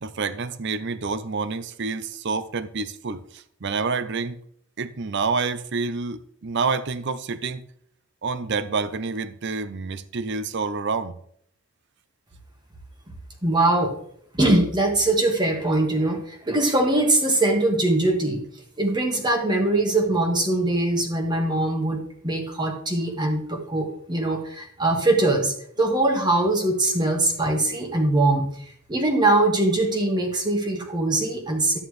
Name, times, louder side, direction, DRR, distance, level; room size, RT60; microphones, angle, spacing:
voice 1, 0.0-4.4 4.8-7.6 8.2-11.1, right 4 dB, 50° right, 0.6 m, -28 dB
voice 2, 13.4-13.9 14.3-18.4 18.8-31.8, right 2 dB, 20° right, 1.3 m, -22 dB
11.5 x 8.9 x 3.2 m
head